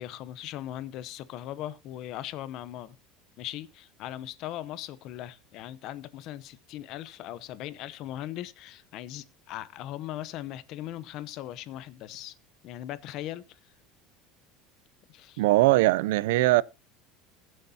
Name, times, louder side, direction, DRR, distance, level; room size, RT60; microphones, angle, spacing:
voice 1, 0.0-3.0 3.4-12.3 12.6-13.6 15.1-15.4, left 13 dB, 45° left, 0.8 m, -39 dB
voice 2, 15.4-16.6, right 18 dB, 85° right, 0.5 m, -21 dB
20.5 x 7.9 x 2.8 m
cardioid pair, 165°, 0 cm